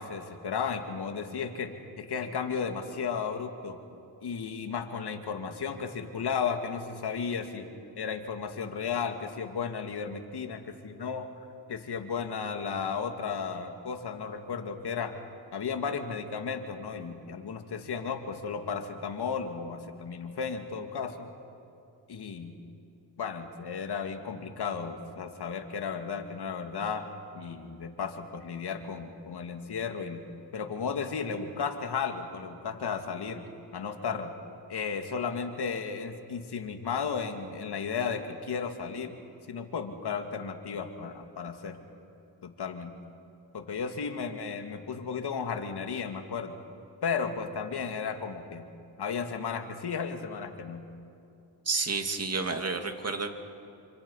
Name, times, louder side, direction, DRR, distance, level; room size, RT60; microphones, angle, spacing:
voice 1, 0.0-3.8 4.2-7.7 8.0-11.3 11.7-15.1 15.5-21.3 22.1-22.6 23.2-27.1 27.3-30.2 30.5-33.5 33.7-34.3 34.7-39.1 39.5-41.8 42.4-42.9 43.5-46.6 47.0-48.7 49.0-50.8, left 6 dB, 55° left, 6 dB, 2.4 m, -34 dB
voice 2, 51.7-53.3, right 4 dB, 30° right, 6 dB, 2.5 m, -30 dB
27.5 x 25.5 x 5.7 m, 2.6 s
cardioid pair, 75°, 47 cm